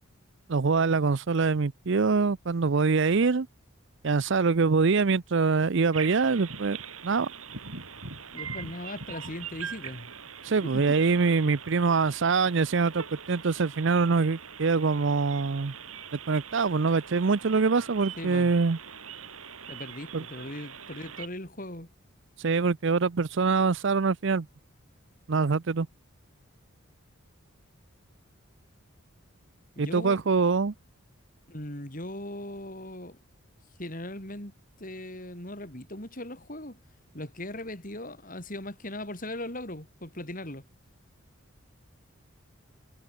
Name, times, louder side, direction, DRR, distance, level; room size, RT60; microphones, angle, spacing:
voice 1, 0.5-3.5 4.0-6.8 7.0-7.3 10.4-15.7 16.3-18.8 20.1-20.2 22.4-24.5 25.3-25.9 29.8-30.7, right 4 dB, 55° right, 0.6 m, -24 dB
sound 1, 5.9-21.3, right 6 dB, 80° right, 5.4 m, -42 dB
voice 2, 8.3-10.1 10.6-10.8 18.2-18.5 19.7-21.9 29.8-30.2 31.5-33.2 33.8-36.8 37.1-40.7, left 1 dB, 40° left, 5.4 m, -39 dB
head